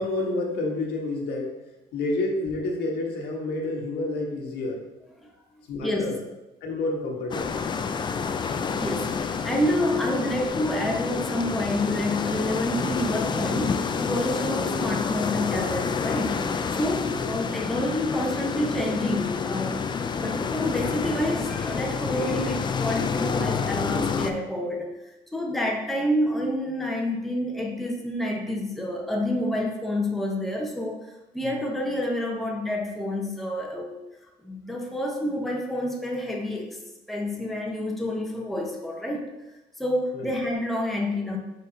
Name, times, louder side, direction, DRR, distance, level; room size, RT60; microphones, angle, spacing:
voice 1, 0.0-1.5 1.9-4.8 5.7-6.2 6.6-7.7 17.1-17.3 31.4-31.5 40.1-40.3, left 2 dB, 75° left, 0 dB, 1.3 m, -29 dB
sound 1, 7.3-24.3, left 5 dB, 25° left, 0.4 m, -28 dB
voice 2, 8.8-19.9 20.1-31.0 31.3-33.9 34.4-36.8 37.1-39.3 39.8-41.4, left 1 dB, ahead, -1 dB, 0.9 m, -28 dB
5.2 x 4.5 x 3.9 m, 0.99 s
cardioid pair, 110°, 17 cm